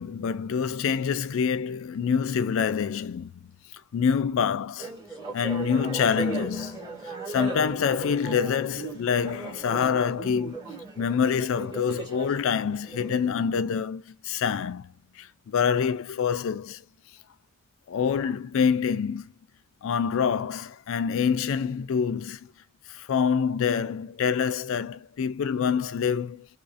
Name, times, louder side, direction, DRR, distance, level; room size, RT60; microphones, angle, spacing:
voice 1, 0.0-3.4 3.9-4.9 5.3-10.6 11.0-16.8 17.9-19.3 19.8-22.4 22.9-26.5, left 7 dB, 65° left, 0.3 m, -26 dB
sound 1, 4.8-13.3, right 4 dB, 15° right, 1.1 m, -37 dB
2.4 x 2.4 x 2.5 m
head